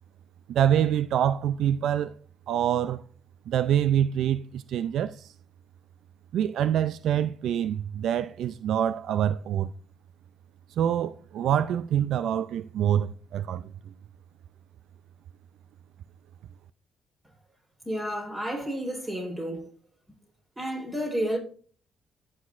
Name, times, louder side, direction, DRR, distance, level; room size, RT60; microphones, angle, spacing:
voice 1, 0.5-2.1 2.5-3.0 3.5-5.3 6.3-9.7 10.8-13.7, right 10 dB, 75° right, 0.3 m, -25 dB
voice 2, 17.8-19.7 20.6-21.4, equal, 20° right, 4.0 m, -31 dB
14.5 x 6.4 x 2.5 m
cardioid pair, 90°, 0 cm